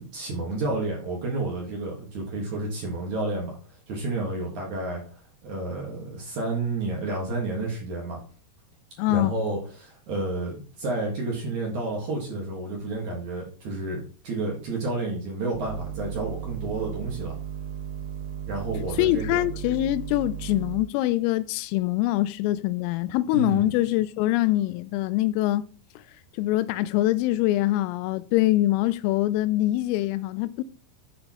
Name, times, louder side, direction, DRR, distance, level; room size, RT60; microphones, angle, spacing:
voice 1, 0.0-3.6 3.9-8.2 9.1-17.3 18.5-19.4 23.3-23.7, right 2 dB, 65° right, 1.9 m, -30 dB
voice 2, 9.0-9.3 19.0-25.7 26.4-30.6, left 16 dB, 90° left, 3.2 m, -24 dB
sound 1, 15.5-20.8, right 9 dB, 85° right, 4.1 m, -35 dB
10.5 x 5.5 x 2.9 m
omnidirectional pair, 5.8 m